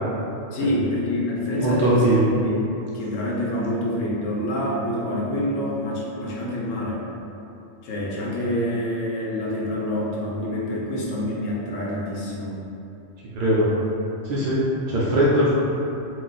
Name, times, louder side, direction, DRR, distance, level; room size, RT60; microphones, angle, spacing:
voice 1, 0.5-2.1 2.4-2.6 2.9-7.0 7.8-12.6, left 1 dB, 80° left, -4 dB, 1.0 m, -26 dB
voice 2, 1.6-2.3 13.3-13.7 14.2-15.6, right 1 dB, 65° right, -7 dB, 0.5 m, -20 dB
2.5 x 2.3 x 3.9 m, 2.9 s
omnidirectional pair, 1.3 m